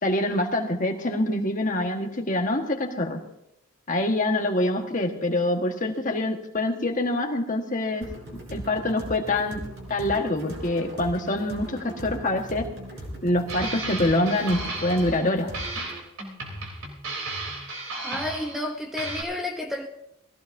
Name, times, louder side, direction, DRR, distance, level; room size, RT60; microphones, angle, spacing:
voice 1, 0.0-3.2 3.9-8.0 8.5-9.6 9.9-12.7 13.2-15.5, left 1 dB, 35° left, 1.5 m, -25 dB
sound 1, 8.0-16.0, equal, 50° right, 4.2 m, -39 dB
sound 2, 13.5-15.3 15.5-18.7 19.0-19.2, right 2 dB, 75° right, 3.5 m, -34 dB
voice 2, 18.0-19.9, left 1 dB, ahead, 0.8 m, -31 dB
20.5 x 15.5 x 2.7 m
head